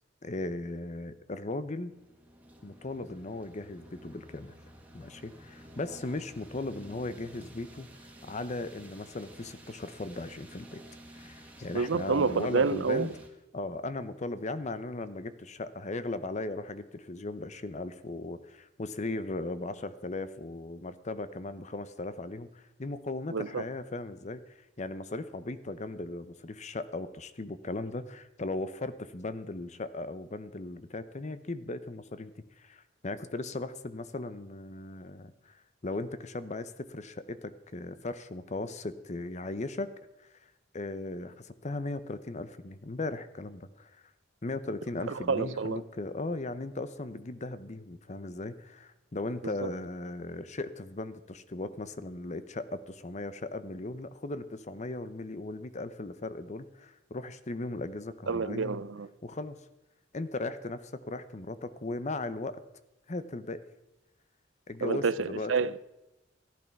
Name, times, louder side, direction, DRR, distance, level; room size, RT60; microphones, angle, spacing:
voice 1, 0.2-1.9 2.6-4.5 4.9-7.9 8.2-10.8 11.1-13.1 13.5-24.4 24.8-39.9 40.7-43.9 44.4-58.8 59.2-59.6 60.1-62.6 63.1-63.6 64.7-65.5, left 2 dB, 40° left, 0.8 m, -37 dB
sound 1, 1.9-13.3, right 1 dB, 10° right, 2.0 m, -52 dB
voice 2, 11.7-13.1 23.3-23.6 45.1-45.8 49.4-49.7 58.3-59.1 64.8-65.8, right 5 dB, 80° right, 0.6 m, -29 dB
14.5 x 11.5 x 5.9 m
head